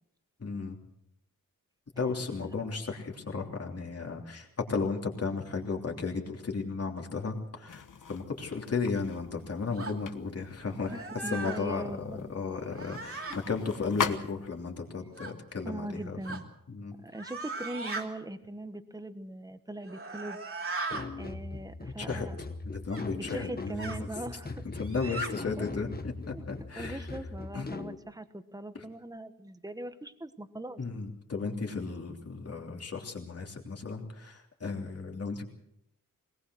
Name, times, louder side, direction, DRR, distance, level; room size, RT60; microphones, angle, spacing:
voice 1, 0.4-0.8 2.0-10.9 11.3-11.8 12.1-15.9 16.7-16.9 22.0-22.3 22.6-24.1 24.8-27.0 27.5-27.7 30.8-35.5, left 4 dB, 45° left, 1 dB, 3.2 m, -34 dB
sound 1, 7.7-14.7, left 6 dB, 65° left, 1.4 m, -40 dB
sound 2, 9.8-10.0 10.8-11.6 12.7-13.4 15.2-15.3 16.2-16.4 17.1-18.0 19.8-21.1 22.9-23.0 23.8-24.0 24.8-25.3, right 3 dB, 40° right, 2.8 m, -38 dB
voice 2, 10.7-12.3 12.8-12.9 13.3-13.4 15.6-16.4 17.0-20.4 21.2-22.4 23.1-24.6 25.0-25.6 26.3-26.4 26.7-30.8, right 1 dB, 10° right, 10 dB, 1.3 m, -41 dB
sound 3, 20.9-27.9, left 3 dB, 30° left, 1.2 m, -40 dB
21.5 x 19.5 x 6.3 m, 0.77 s
wide cardioid pair, 140°, 33 cm